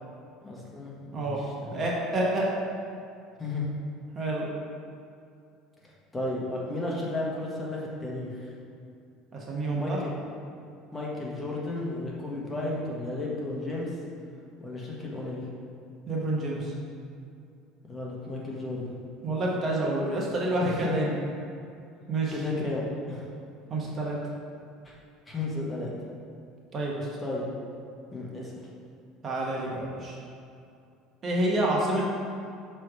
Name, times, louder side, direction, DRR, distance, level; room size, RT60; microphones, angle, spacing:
voice 1, 0.4-1.8 3.4-3.7 5.8-8.5 9.7-10.2 10.9-13.9 14.6-15.4 17.9-19.0 20.6-21.0 22.3-23.3 24.8-24.9 25.3-25.9 27.2-27.4 28.1-28.5, left 2 dB, 20° left, -4 dB, 1.4 m, -33 dB
voice 2, 1.1-1.4 1.7-2.5 4.1-4.5 9.3-10.0 16.1-16.7 19.2-21.2 22.1-22.3 23.7-24.2 26.7-27.1 29.2-30.1 31.2-32.1, right 1 dB, 40° right, -3 dB, 1.2 m, -28 dB
6.1 x 3.3 x 4.9 m, 2.5 s
supercardioid pair, 95°, 0 cm